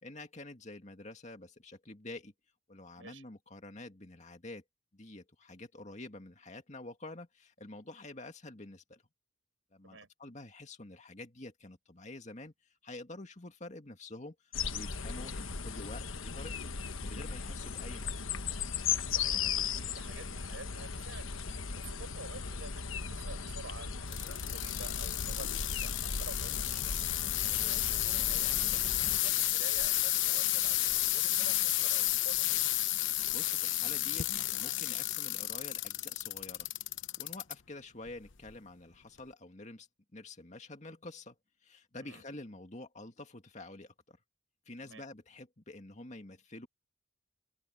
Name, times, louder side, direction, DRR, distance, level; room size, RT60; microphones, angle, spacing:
voice 1, 0.0-2.3 2.7-4.6 4.9-9.0 9.7-12.5 12.8-14.4 14.7-16.7 17.0-18.2 33.0-36.7 37.2-41.4 41.6-44.2 44.7-46.7, left 2 dB, 35° left, 2.2 m, -48 dB
sound 1, 14.5-29.2, left 6 dB, 85° left, 1.2 m, -37 dB
voice 2, 19.1-32.5 41.9-42.2 44.8-45.0, right 3 dB, 75° right, 6.6 m, -50 dB
sound 2, 24.1-37.5 38.1-38.5 39.2-39.3, left 15 dB, 70° left, 0.9 m, -32 dB
head